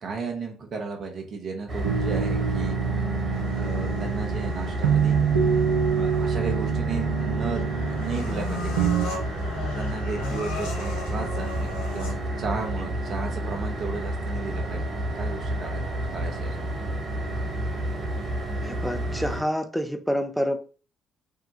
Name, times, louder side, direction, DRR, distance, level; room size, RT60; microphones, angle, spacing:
voice 1, 0.0-2.8 3.5-5.2 5.9-8.9 9.7-15.8 16.1-16.8, right 4 dB, 50° right, 0.9 m, -34 dB
sound 1, 1.7-19.4, right 1 dB, 35° right, 1.5 m, -30 dB
sound 2, 1.8-9.1, right 7 dB, 85° right, 0.4 m, -26 dB
sound 3, 3.3-12.4, left 3 dB, 75° left, 0.7 m, -38 dB
voice 2, 18.6-20.6, equal, ahead, 0.6 m, -27 dB
2.7 x 2.3 x 4.0 m
hypercardioid pair, 50°, 0 cm